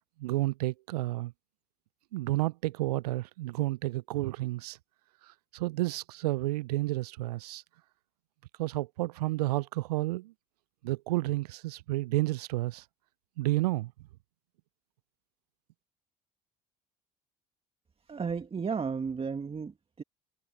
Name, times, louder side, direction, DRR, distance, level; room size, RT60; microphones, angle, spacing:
voice 1, 0.2-1.3 2.1-4.8 5.3-7.6 8.6-10.3 10.8-12.8 13.4-13.9, right 18 dB, 80° right, 0.5 m, -31 dB
voice 2, 18.1-20.0, right 5 dB, 30° right, 1.9 m, -34 dB
hypercardioid pair, 60°, 20 cm